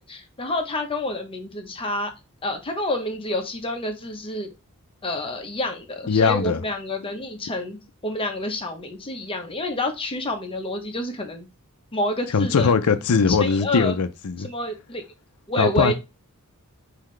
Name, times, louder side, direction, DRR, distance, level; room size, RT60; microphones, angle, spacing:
voice 1, 0.0-2.1 2.4-4.5 5.0-11.5 11.9-12.7 13.3-14.0 14.4-15.0 15.5-15.9, left 1 dB, 25° left, 0.9 m, -28 dB
voice 2, 6.1-6.6 12.3-14.5 15.6-15.9, left 5 dB, 80° left, 0.5 m, -20 dB
5.8 x 2.8 x 3.2 m
head